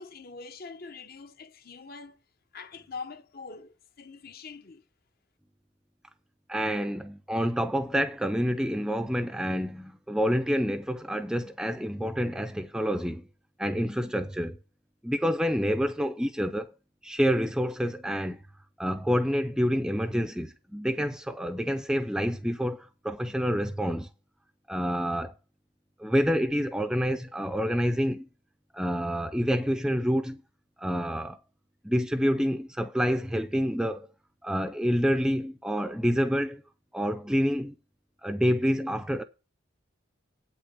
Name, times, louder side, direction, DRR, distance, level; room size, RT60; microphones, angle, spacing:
voice 1, 0.0-2.2 2.5-4.8, left 4 dB, 45° left, 0.8 m, -43 dB
voice 2, 6.5-13.3 13.6-14.6 15.0-16.7 17.0-18.4 18.8-24.1 24.7-25.3 26.0-28.3 28.7-30.4 30.8-31.4 31.8-34.1 34.4-36.6 36.9-37.7 38.2-39.2, equal, 5° right, 0.5 m, -28 dB
8.8 x 5.7 x 6.7 m
head